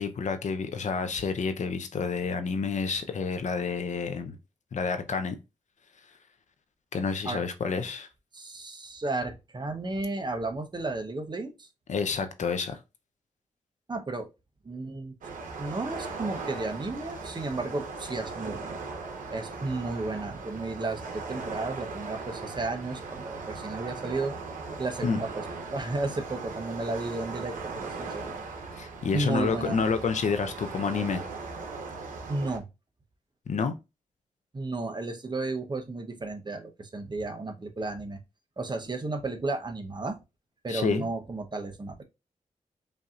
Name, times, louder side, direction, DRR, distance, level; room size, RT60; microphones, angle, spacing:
voice 1, 0.0-4.4 4.7-5.4 6.9-8.1 11.9-12.8 25.0-25.2 28.8-31.2 33.5-33.7 40.7-41.1, left 5 dB, 65° left, 0.6 m, -29 dB
voice 2, 8.3-11.7 13.9-14.3 14.6-15.1 15.6-18.8 19.3-24.3 24.8-25.4 25.7-28.4 29.1-29.8 32.3-32.7 34.5-38.2 38.6-40.2 40.6-42.0, right 3 dB, 35° right, 0.9 m, -33 dB
sound 1, 15.2-32.6, right 4 dB, 85° right, 0.9 m, -38 dB
5.3 x 2.7 x 2.4 m
cardioid pair, 60°, 13 cm